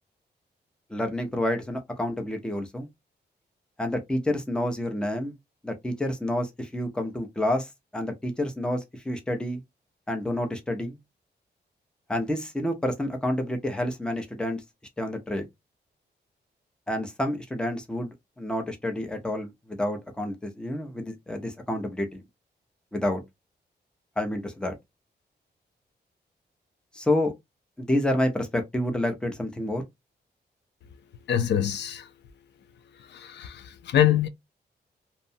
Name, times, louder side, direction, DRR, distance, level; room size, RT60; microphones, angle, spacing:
voice 1, 0.9-2.9 3.8-5.3 5.6-9.6 10.1-11.0 12.1-14.6 15.0-15.4 16.9-22.2 22.9-23.2 24.2-24.8 26.9-27.3 27.8-29.8, left 1 dB, 5° left, 0.5 m, -29 dB
voice 2, 31.3-32.0 33.1-34.3, left 10 dB, 85° left, 0.4 m, -24 dB
2.7 x 2.1 x 2.6 m
wide cardioid pair, 180°, 18 cm